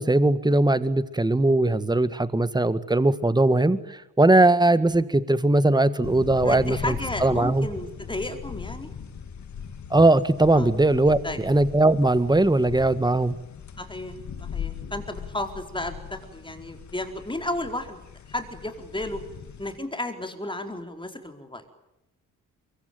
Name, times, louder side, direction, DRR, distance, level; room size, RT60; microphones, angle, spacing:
voice 1, 0.0-6.9 7.2-7.7 9.9-13.4, right 2 dB, 15° right, 14 dB, 1.7 m, -20 dB
sound 1, 6.0-19.8, left 7 dB, 60° left, 2.3 m, -39 dB
voice 2, 6.4-8.9 10.5-10.7 11.2-11.4 13.8-18.0 18.3-19.2 19.6-21.6, left 1 dB, 15° left, 6 dB, 4.5 m, -33 dB
24.0 x 22.5 x 9.2 m, 0.90 s
cardioid pair, 75°, 32 cm